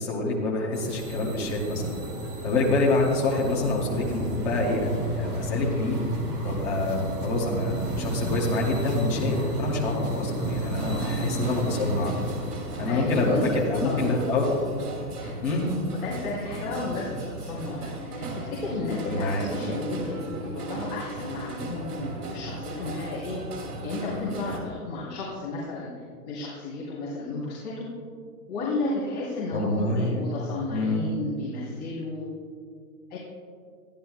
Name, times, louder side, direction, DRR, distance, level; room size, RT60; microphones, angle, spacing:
voice 1, 0.0-2.0 2.4-6.0 6.4-12.1 12.8-14.5 15.4-15.7 19.0-19.5 29.5-30.3 30.7-31.1, left 2 dB, 5° left, -4 dB, 0.6 m, -26 dB
sound 1, 0.7-16.0, right 1 dB, 15° right, 1.0 m, -32 dB
sound 2, 10.7-24.6, right 2 dB, 75° right, 2.9 m, -37 dB
voice 2, 10.9-11.2 12.8-13.5 13.8-14.2 15.1-15.3 16.0-23.4 23.8-25.9 26.2-27.9 28.5-32.3 33.1-33.2, left 3 dB, 30° left, -8 dB, 3.2 m, -33 dB
21.5 x 14.5 x 2.3 m, 2.1 s
hypercardioid pair, 165°, 47 cm